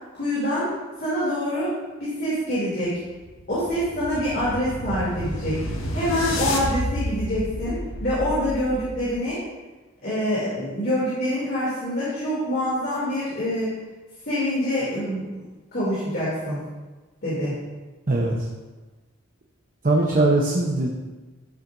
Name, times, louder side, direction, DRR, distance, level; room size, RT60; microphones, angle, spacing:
voice 1, 0.1-0.7 1.0-1.7 2.0-2.9 3.5-5.6 5.9-9.4 10.0-13.7 14.2-15.3 15.7-16.6 17.2-17.6, equal, 45° left, -9 dB, 2.8 m, -25 dB
sound 1, 3.1-9.3, left 1 dB, 75° left, 1.2 m, -31 dB
voice 2, 18.1-18.5 19.8-20.9, right 2 dB, 40° right, -1 dB, 0.9 m, -20 dB
12.0 x 7.5 x 2.6 m, 1.2 s
head